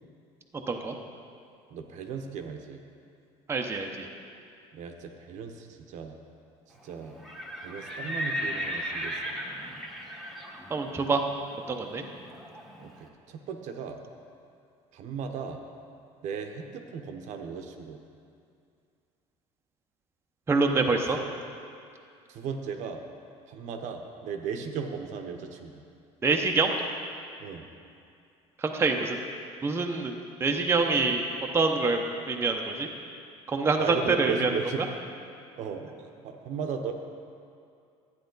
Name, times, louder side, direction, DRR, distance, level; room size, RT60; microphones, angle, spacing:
voice 1, 1.7-2.8 4.7-6.2 6.8-7.1 7.6-9.3 12.8-14.0 14.9-15.6 16.2-18.0 20.7-21.2 22.3-23.0 23.5-25.8 27.4-27.6 33.8-34.8 35.6-36.9, right 6 dB, 60° right, 5 dB, 0.9 m, -36 dB
voice 2, 3.5-4.1 10.7-11.2 11.7-12.0 20.5-21.2 26.2-26.7 28.6-29.2 29.6-30.1 30.4-31.2 31.5-32.9 33.5-34.5, right 3 dB, 20° right, 2 dB, 0.7 m, -25 dB
Livestock farm animals working animals, 7.1-12.9, equal, ahead, 1.3 m, -36 dB
11.5 x 9.2 x 3.9 m, 2.4 s
cardioid pair, 125°, 14 cm